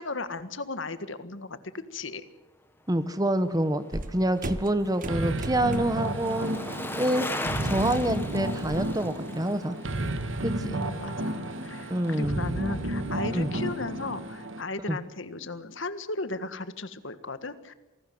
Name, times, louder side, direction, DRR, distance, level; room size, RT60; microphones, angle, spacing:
voice 1, 0.0-2.3 10.6-11.9 12.2-17.7, left 3 dB, 70° left, 12 dB, 1.6 m, -36 dB
voice 2, 2.9-6.6 7.0-9.8 10.4-10.8 11.9-12.4 13.3-13.5 14.9-15.0, right 1 dB, 20° right, 12 dB, 1.2 m, -27 dB
Bicycle, 3.4-11.8 12.1-12.2, left 2 dB, 10° left, 1.9 m, -39 dB
sound 1, 3.9-6.1 6.5-6.8 7.2-8.9, right 1 dB, 40° right, 1.2 m, -38 dB
sound 2, 5.1-14.6, right 1 dB, 70° right, 1.9 m, -32 dB
27.5 x 19.0 x 7.8 m, 1.0 s
head